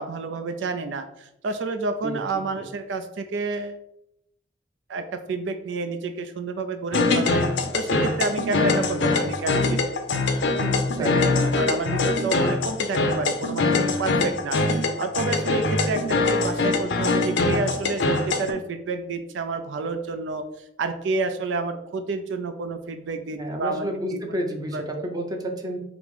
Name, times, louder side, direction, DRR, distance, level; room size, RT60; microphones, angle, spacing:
voice 1, 0.0-3.8 4.9-7.5 7.7-9.8 10.9-24.2 24.7-25.1, right 3 dB, 75° right, 8 dB, 0.4 m, -30 dB
sound 1, 6.9-18.5, left 3 dB, 70° left, 0.6 m, -23 dB
voice 2, 10.6-11.3 23.4-25.8, right 1 dB, 20° right, 2 dB, 0.7 m, -30 dB
5.0 x 2.0 x 4.7 m, 0.81 s
head